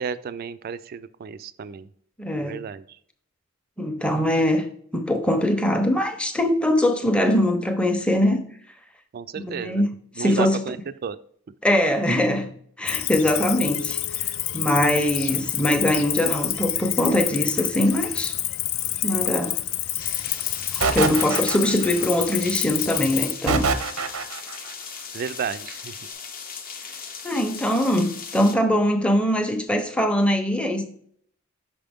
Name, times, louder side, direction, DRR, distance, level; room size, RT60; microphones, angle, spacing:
voice 1, 0.0-1.9 2.4-2.8 9.1-9.8 10.2-10.8 11.0-11.2 25.1-25.9, right 6 dB, 45° right, 0.3 m, -32 dB
voice 2, 2.2-2.6 3.8-4.7 4.9-8.4 9.4-9.9 10.2-10.6 11.6-12.5 12.8-18.4 19.0-19.6 20.7-23.7 27.2-30.8, left 1 dB, 5° left, 0.6 m, -22 dB
Cricket, 12.9-23.3, left 13 dB, 65° left, 0.4 m, -28 dB
sound 1, 20.0-28.6, left 6 dB, 40° left, 0.7 m, -38 dB
sound 2, 20.8-22.1 23.5-24.6, right 4 dB, 85° right, 0.6 m, -24 dB
5.7 x 5.0 x 3.5 m
head